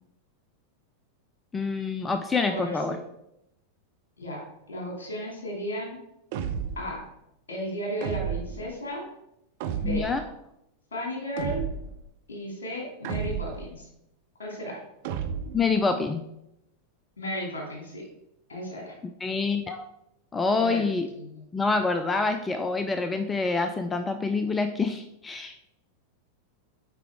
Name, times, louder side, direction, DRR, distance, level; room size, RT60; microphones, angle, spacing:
voice 1, 1.5-3.0 9.8-10.2 15.5-16.2 19.2-19.9 20.3-21.1 21.5-25.6, left 4 dB, 15° left, 7 dB, 0.4 m, -26 dB
voice 2, 2.4-3.0 4.2-4.4 4.7-6.0 6.8-7.0 7.5-9.0 9.7-10.1 10.9-11.6 12.3-13.9 14.4-14.8 17.2-18.0 18.5-18.9 20.6-20.8 21.1-21.4, equal, 65° left, -1 dB, 2.7 m, -34 dB
sound 1, 6.3-6.9 8.0-8.7 9.6-10.2 11.4-12.0 13.0-13.7 15.0-15.7, right 8 dB, 50° right, 0.6 m, -32 dB
8.2 x 4.7 x 3.5 m, 0.83 s
figure-of-eight pair, 90°, 0 cm